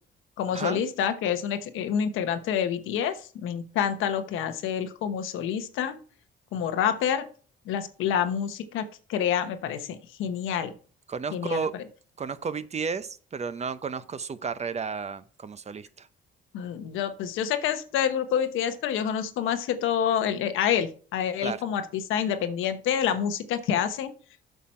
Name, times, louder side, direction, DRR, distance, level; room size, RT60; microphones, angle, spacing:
voice 1, 0.4-6.0 6.5-7.3 7.7-10.7 11.3-11.8 16.5-21.8 22.1-24.1, left 8 dB, 90° left, 9 dB, 1.1 m, -27 dB
voice 2, 11.1-11.7 12.2-16.1 21.4-21.6, right 5 dB, 35° right, 13 dB, 0.7 m, -32 dB
8.2 x 5.9 x 4.4 m, 0.41 s
cardioid pair, 90°, 20 cm